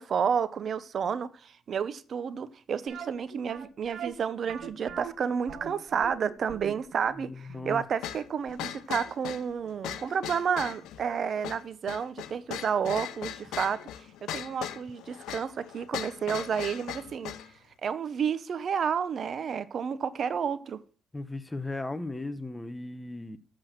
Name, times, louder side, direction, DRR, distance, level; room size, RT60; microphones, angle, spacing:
voice 1, 0.0-13.8 14.2-17.3 17.8-20.8, right 7 dB, 55° right, 0.7 m, -31 dB
sound 1, 2.9-9.7 10.0-10.1 10.7-10.8 11.1-11.2, right 9 dB, 75° right, 1.5 m, -43 dB
voice 2, 7.2-7.8 21.1-23.4, left 2 dB, 10° left, 1.0 m, -36 dB
sound 2, 8.0-17.5, left 11 dB, 85° left, 0.7 m, -39 dB
7.8 x 6.1 x 7.5 m
cardioid pair, 90°, 0 cm